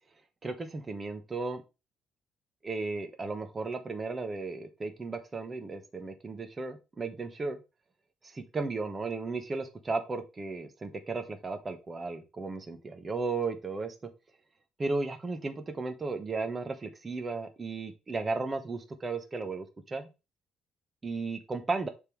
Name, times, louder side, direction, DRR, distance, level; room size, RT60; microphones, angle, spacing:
voice 1, 0.4-1.6 2.6-7.6 8.2-13.9 14.8-20.1 21.0-21.9, right 3 dB, 25° right, 6 dB, 1.0 m, -35 dB
6.5 x 3.7 x 4.6 m, 0.27 s
cardioid pair, 130°, 0 cm